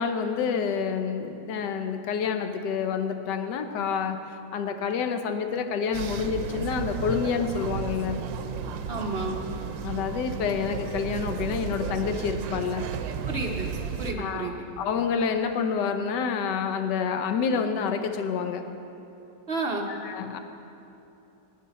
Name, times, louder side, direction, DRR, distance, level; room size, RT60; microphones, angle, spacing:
voice 1, 0.0-8.3 9.8-13.0 14.2-18.7 19.9-20.4, left 6 dB, 65° left, 7 dB, 1.2 m, -28 dB
sound 1, 5.9-14.1, right 6 dB, 70° right, 1.3 m, -33 dB
voice 2, 8.9-9.4 13.3-13.7 14.0-14.7 19.5-19.9, right 3 dB, 50° right, 1 dB, 0.7 m, -31 dB
17.5 x 11.0 x 4.1 m, 2.9 s
omnidirectional pair, 2.3 m